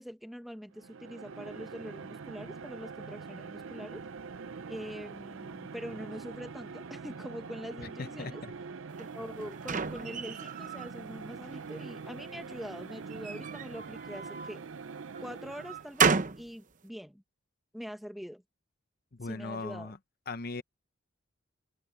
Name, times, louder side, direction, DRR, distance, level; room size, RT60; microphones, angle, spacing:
voice 1, 0.0-4.0 4.7-8.4 9.0-14.6 15.2-17.2 17.7-18.4 19.2-19.9, equal, ahead, 1.2 m, -44 dB
sound 1, 0.7-16.0, right 5 dB, 65° right, 0.5 m, -44 dB
voice 2, 8.0-8.5 19.2-20.0 20.3-20.6, left 3 dB, 45° left, 0.8 m, -38 dB
sound 2, 9.0-10.9 11.4-12.1 13.1-14.6 15.1-16.5, right 5 dB, 40° right, 0.8 m, -32 dB
head